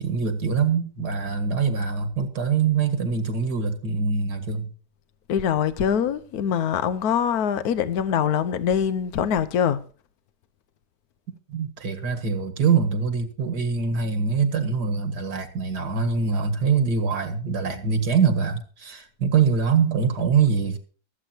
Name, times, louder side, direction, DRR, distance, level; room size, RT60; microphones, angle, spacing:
voice 1, 0.0-4.7 11.5-20.8, right 5 dB, 75° right, 2.3 m, -23 dB
voice 2, 5.3-9.8, left 8 dB, 65° left, 1.3 m, -23 dB
23.0 x 8.2 x 2.8 m
omnidirectional pair, 1.8 m